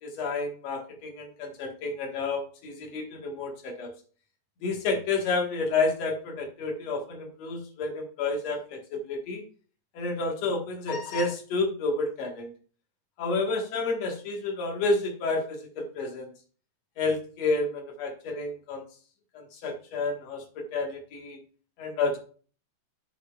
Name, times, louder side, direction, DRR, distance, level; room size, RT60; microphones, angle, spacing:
voice 1, 0.0-3.9 4.6-9.4 9.9-12.5 13.2-16.3 17.0-18.8 19.3-21.4 21.8-22.2, left 3 dB, 60° left, 2 dB, 2.5 m, -30 dB
10.0 x 6.8 x 2.3 m, 0.41 s
omnidirectional pair, 3.5 m